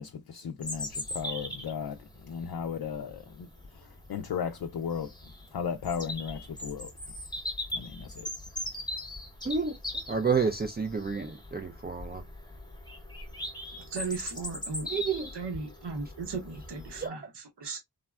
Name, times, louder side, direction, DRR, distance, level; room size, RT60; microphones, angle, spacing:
voice 1, 0.0-6.9 7.7-8.3, left 7 dB, 60° left, 0.5 m, -36 dB
Bird vocalization bird call bird song, 0.6-17.1, left 1 dB, 10° left, 0.8 m, -40 dB
voice 2, 9.4-9.8 10.1-12.2 14.8-15.3 17.0-17.2, right 5 dB, 25° right, 0.4 m, -29 dB
voice 3, 13.9-14.9 15.3-17.8, right 4 dB, 75° right, 0.9 m, -36 dB
3.5 x 2.1 x 2.3 m
wide cardioid pair, 50°, 42 cm